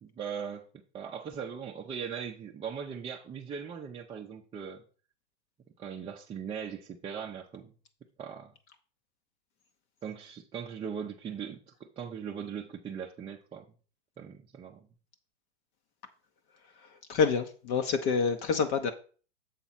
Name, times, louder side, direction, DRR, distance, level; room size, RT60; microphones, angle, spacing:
voice 1, 0.0-4.8 5.8-7.7 8.2-8.5 10.0-13.7 14.2-14.9, right 7 dB, 15° right, -1 dB, 0.6 m, -39 dB
voice 2, 16.8-18.9, left 5 dB, 40° left, 7 dB, 0.9 m, -28 dB
7.3 x 3.9 x 5.7 m, 0.39 s
hypercardioid pair, 120°, 35 cm